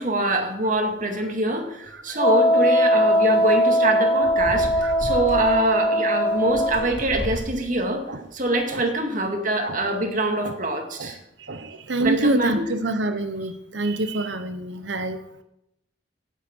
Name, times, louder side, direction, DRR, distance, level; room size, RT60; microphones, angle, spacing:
voice 1, 0.0-8.0 8.3-11.2 12.0-12.7, right 2 dB, 45° right, 3 dB, 2.3 m, -24 dB
Wind instrument woodwind instrument, 2.2-6.9, equal, 25° left, 3.0 m, -20 dB
sound 1, 3.2-3.4 4.2-5.4 6.3-7.5 8.3-8.6, equal, 30° right, 4.5 m, -33 dB
voice 2, 9.6-10.0 10.4-10.5 11.0-11.1 11.4-15.4, right 2 dB, 80° right, 9 dB, 1.0 m, -27 dB
16.5 x 8.3 x 4.6 m, 0.83 s
head